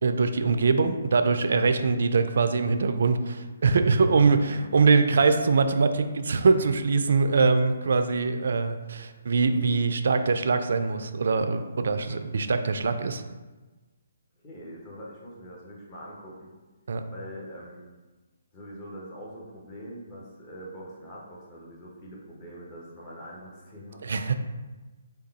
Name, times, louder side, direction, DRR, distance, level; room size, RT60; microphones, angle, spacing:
voice 1, 0.0-13.2 16.9-17.0 24.0-24.4, right 4 dB, 65° right, 8 dB, 0.3 m, -23 dB
voice 2, 4.4-4.8 14.4-16.5 17.1-17.9 18.5-24.3, equal, 25° left, -5 dB, 1.1 m, -43 dB
3.6 x 2.2 x 4.1 m, 1.2 s
figure-of-eight pair, 145°, 0 cm